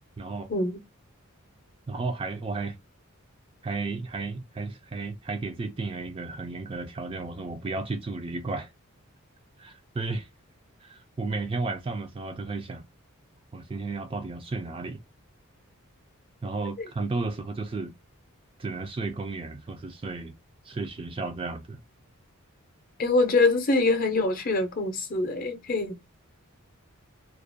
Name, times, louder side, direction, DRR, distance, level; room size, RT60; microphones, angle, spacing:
voice 1, 0.2-0.5 1.9-2.8 3.6-8.7 9.6-10.3 10.8-12.8 13.5-15.0 16.4-17.9 18.6-20.3 20.7-21.8, right 3 dB, 25° right, 0.3 m, -33 dB
voice 2, 23.0-26.1, left 3 dB, 40° left, 0.6 m, -24 dB
2.3 x 2.1 x 2.5 m
head